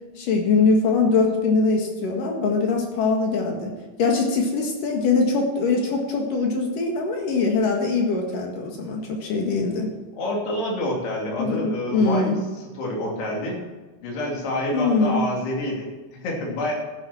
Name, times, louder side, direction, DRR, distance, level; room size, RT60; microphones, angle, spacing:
voice 1, 0.2-3.7 4.0-9.9 11.4-12.4 14.7-15.2, left 4 dB, 60° left, 1 dB, 3.1 m, -22 dB
voice 2, 10.2-13.6 14.0-16.7, left 1 dB, 85° left, -2 dB, 5.1 m, -28 dB
13.5 x 11.0 x 4.4 m, 1.3 s
omnidirectional pair, 4.5 m